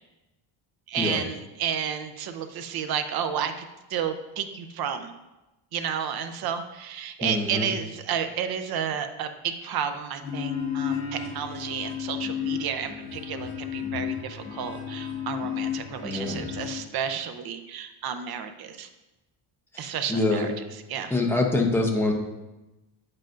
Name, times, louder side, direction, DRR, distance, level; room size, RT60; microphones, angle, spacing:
voice 1, 0.9-3.5 3.9-5.1 5.7-18.9 19.8-20.5 20.9-21.2, right 8 dB, 50° right, 8 dB, 0.7 m, -31 dB
voice 2, 7.2-7.7 16.0-16.5 19.7-20.5 21.1-22.1, left 2 dB, 5° left, 0 dB, 0.7 m, -25 dB
sound 1, 10.2-16.8, left 8 dB, 80° left, 2.9 m, -33 dB
9.0 x 7.6 x 2.5 m, 1.0 s
cardioid pair, 170°, 48 cm